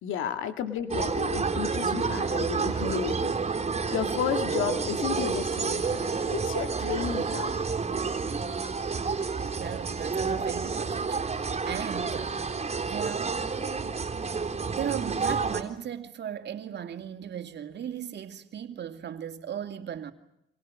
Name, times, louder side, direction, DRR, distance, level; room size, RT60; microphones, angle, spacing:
voice 1, 0.0-3.4 3.9-7.6, left 8 dB, 85° left, 1.9 m, -32 dB
sound 1, 0.9-15.6, right 4 dB, 30° right, 3.7 m, -29 dB
voice 2, 9.5-12.4 12.9-13.4 14.7-20.1, right 9 dB, 60° right, 2.4 m, -37 dB
28.0 x 25.5 x 6.4 m
cardioid pair, 90°, 20 cm